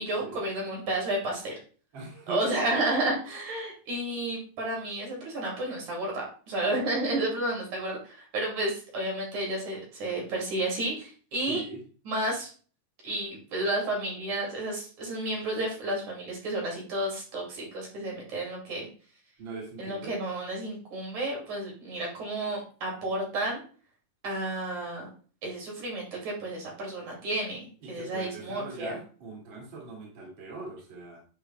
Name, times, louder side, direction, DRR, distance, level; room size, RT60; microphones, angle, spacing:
voice 1, 0.0-1.6 2.3-11.6 12.1-12.5 13.0-18.9 19.8-23.6 24.2-25.1 25.4-28.9, right 1 dB, 55° right, -1 dB, 3.5 m, -31 dB
voice 2, 1.9-2.4 11.5-11.8 19.4-20.1 27.8-31.2, right 3 dB, 35° right, -3 dB, 2.5 m, -40 dB
9.8 x 6.6 x 2.2 m, 0.40 s
omnidirectional pair, 4.2 m